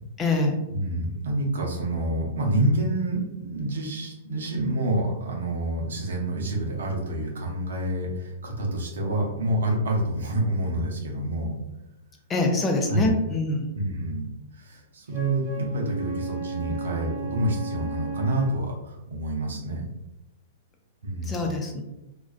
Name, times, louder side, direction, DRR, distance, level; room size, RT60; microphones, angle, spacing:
voice 1, 0.2-0.6 12.3-13.7 21.2-21.8, left 2 dB, 20° left, 2 dB, 0.4 m, -24 dB
voice 2, 0.7-11.6 12.9-13.1 13.7-14.3 14.5-19.8 21.0-21.4, right 1 dB, 70° right, 0 dB, 0.6 m, -27 dB
Wind instrument woodwind instrument, 15.1-18.6, right 3 dB, 30° right, 0.7 m, -34 dB
2.4 x 2.2 x 2.4 m, 0.94 s
hypercardioid pair, 110°, 0 cm